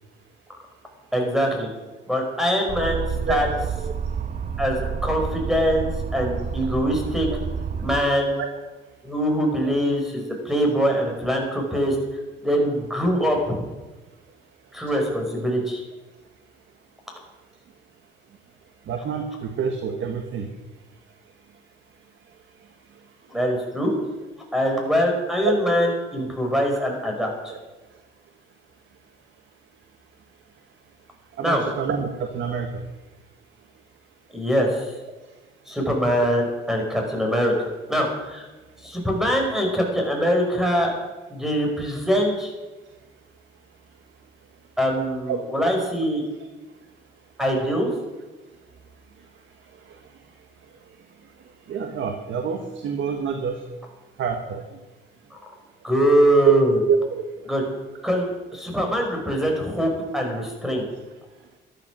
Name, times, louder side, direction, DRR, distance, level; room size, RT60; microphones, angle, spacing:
voice 1, 1.1-1.7 2.1-3.5 4.6-7.3 7.8-8.3 9.0-12.0 12.4-13.6 14.7-15.8 23.3-23.9 24.5-27.5 31.4-31.6 34.3-34.9 35.7-38.5 38.8-40.9 41.3-42.5 44.8-46.2 47.4-47.9 55.8-56.8 57.5-57.6 58.0-60.8, equal, ahead, 1 dB, 5.2 m, -23 dB
sound 1, 2.7-8.0, right 6 dB, 40° right, 0.9 m, -29 dB
voice 2, 3.8-4.2 8.4-8.5 18.8-20.5 22.6-22.7 25.4-25.5 27.5-27.6 31.3-32.9 35.3-35.4 45.3-45.4 49.2-49.3 49.6-50.2 50.6-51.0 51.2-53.6 54.2-54.8 56.4-56.6 56.9-57.2, right 6 dB, 75° right, 5 dB, 1.5 m, -26 dB
13.5 x 12.0 x 6.2 m, 1.2 s
cardioid pair, 90°, 20 cm